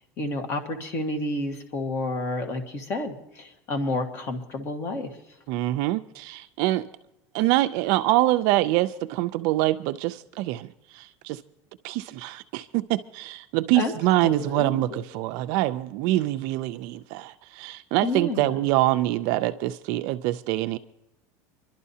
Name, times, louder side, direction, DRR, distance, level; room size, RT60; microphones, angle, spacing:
voice 1, 0.0-5.1 13.7-13.9 14.2-15.0 18.0-18.6, left 2 dB, 35° left, 1.5 m, -30 dB
voice 2, 5.5-6.9 7.3-11.4 11.8-20.8, right 16 dB, 55° right, 0.4 m, -25 dB
26.5 x 12.0 x 2.8 m
cardioid pair, 160°, 8 cm